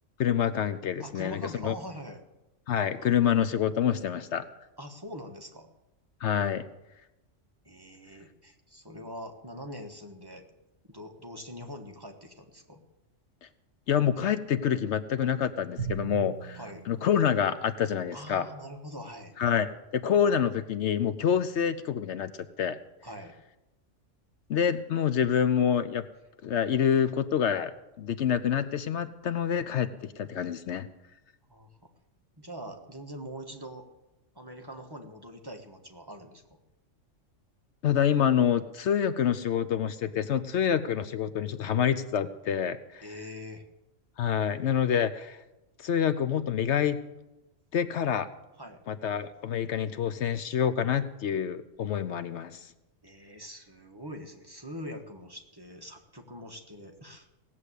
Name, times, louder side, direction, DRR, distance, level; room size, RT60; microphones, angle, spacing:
voice 1, 0.2-1.7 2.7-4.4 6.2-6.6 13.9-16.6 16.9-18.5 19.4-22.3 22.6-22.8 24.5-26.0 26.4-27.7 28.0-29.9 30.2-30.9 37.8-43.1 44.2-45.4 45.8-47.0 47.7-48.3 48.9-52.6, left 8 dB, 70° left, 13 dB, 0.9 m, -27 dB
voice 2, 1.0-2.2 4.8-5.7 7.6-10.4 10.9-12.8 16.6-16.9 18.1-19.3 23.0-23.3 31.5-31.7 32.4-33.9 34.3-36.4 43.0-43.6 48.6-48.8 53.0-57.3, equal, 20° right, 3 dB, 1.2 m, -43 dB
Drum, 15.8-18.2, right 6 dB, 45° right, 2.2 m, -39 dB
17.5 x 7.5 x 8.1 m, 0.98 s
omnidirectional pair, 1.3 m